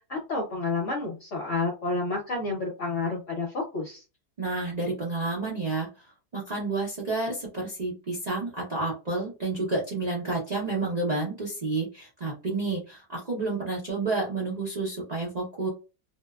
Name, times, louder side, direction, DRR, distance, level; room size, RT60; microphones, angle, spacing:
voice 1, 0.1-4.0, left 3 dB, 60° left, -2 dB, 0.9 m, -30 dB
voice 2, 4.4-5.9 6.3-15.7, right 3 dB, 45° right, -3 dB, 0.5 m, -30 dB
2.7 x 2.0 x 2.3 m, 0.30 s
omnidirectional pair, 1.7 m